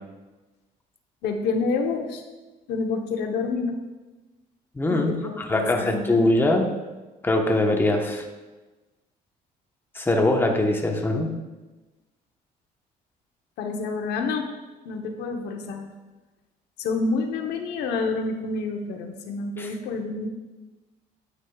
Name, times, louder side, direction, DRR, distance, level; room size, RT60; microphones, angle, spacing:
voice 1, 1.2-2.2 2.7-3.8 4.9-6.3 13.6-14.5 14.8-15.9 16.8-20.3, left 4 dB, 80° left, 4 dB, 1.0 m, -28 dB
voice 2, 4.8-5.1 5.4-6.7 7.2-8.2 9.9-11.3 19.6-19.7, left 2 dB, 15° left, 2 dB, 1.1 m, -22 dB
9.8 x 8.5 x 2.3 m, 1.2 s
cardioid pair, 110°, 17 cm